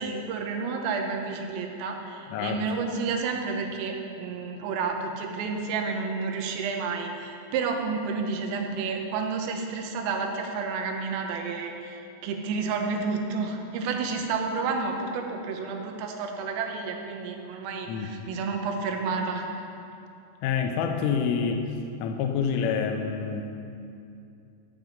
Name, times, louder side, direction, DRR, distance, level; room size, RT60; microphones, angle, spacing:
voice 1, 0.0-19.5, right 4 dB, 90° right, 2 dB, 3.6 m, -30 dB
voice 2, 2.3-2.6 17.9-18.1 20.4-21.7 22.0-23.4, left 6 dB, 85° left, 4 dB, 3.2 m, -27 dB
14.5 x 7.5 x 5.2 m, 2.6 s
omnidirectional pair, 5.7 m